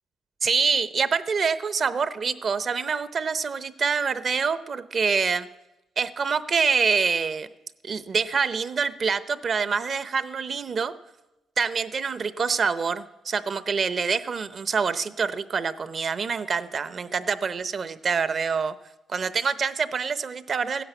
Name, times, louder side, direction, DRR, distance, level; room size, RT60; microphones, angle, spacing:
voice 1, 0.4-5.5 6.0-7.5 7.8-10.9 11.6-18.7 19.1-20.8, right 5 dB, 45° right, 14 dB, 0.8 m, -26 dB
15.5 x 10.0 x 8.2 m, 1.0 s
cardioid pair, 90°, 0 cm